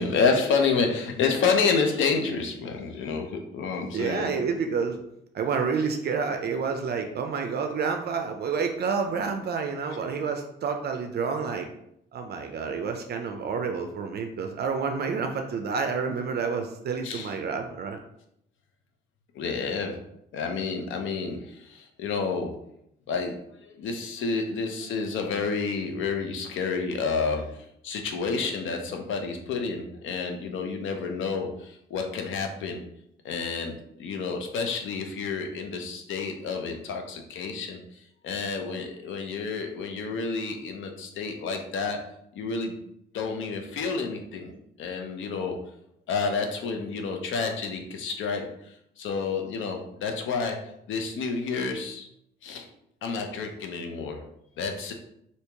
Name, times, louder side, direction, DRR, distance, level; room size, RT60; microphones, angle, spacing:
voice 1, 0.0-4.3 17.0-17.3 19.3-20.0 20.3-22.5 23.1-32.8 33.2-37.8 38.2-42.0 42.3-42.8 43.1-44.5 44.8-45.6 46.1-48.4 49.0-50.6 50.9-52.1 52.4-52.7 53.0-54.2 54.6-54.9, left 5 dB, 75° left, 4 dB, 0.6 m, -29 dB
voice 2, 3.9-5.0 5.3-11.7 12.1-18.0, right 5 dB, 55° right, 5 dB, 0.4 m, -29 dB
2.9 x 2.8 x 3.4 m, 0.76 s
cardioid pair, 90°, 20 cm